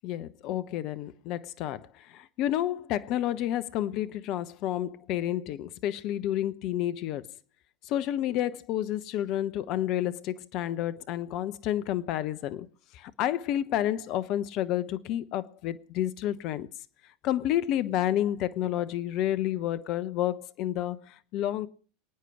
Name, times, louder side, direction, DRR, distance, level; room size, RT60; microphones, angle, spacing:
voice 1, 0.0-1.9 2.1-7.2 7.9-12.7 12.9-16.7 17.2-21.7, left 12 dB, 50° left, 1.0 m, -30 dB
27.5 x 9.4 x 4.8 m
hypercardioid pair, 85°, 0 cm